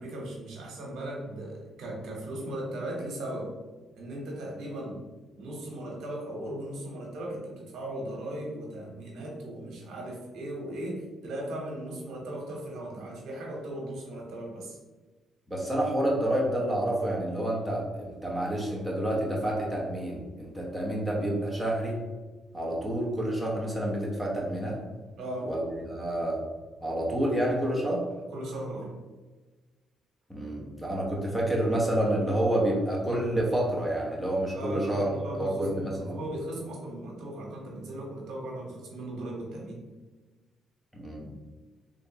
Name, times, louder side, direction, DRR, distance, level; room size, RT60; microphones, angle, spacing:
voice 1, 0.0-3.5 3.9-5.0 5.4-14.8 25.2-25.5 28.3-28.9 34.5-39.8, right 1 dB, 80° right, -1 dB, 1.0 m, -37 dB
voice 2, 15.5-22.0 22.5-24.8 25.5-25.6 25.9-26.4 26.8-28.0 30.3-35.1 35.4-36.2 40.9-41.3, right 1 dB, 5° left, -3 dB, 0.9 m, -28 dB
3.2 x 3.0 x 2.9 m, 1.3 s
cardioid pair, 90°, 0 cm